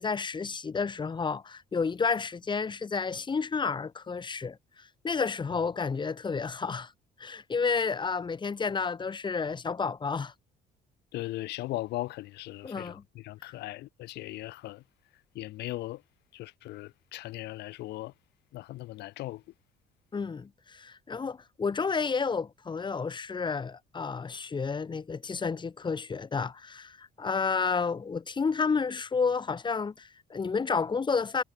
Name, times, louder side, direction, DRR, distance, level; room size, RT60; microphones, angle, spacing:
voice 1, 0.0-6.9 7.2-10.3 12.6-13.0 20.1-31.4, left 5 dB, 25° left, 2.3 m, -31 dB
voice 2, 11.1-14.8 15.3-16.0 16.3-18.1 18.5-19.4, left 17 dB, 80° left, 1.9 m, -38 dB
cardioid pair, 110°, 17 cm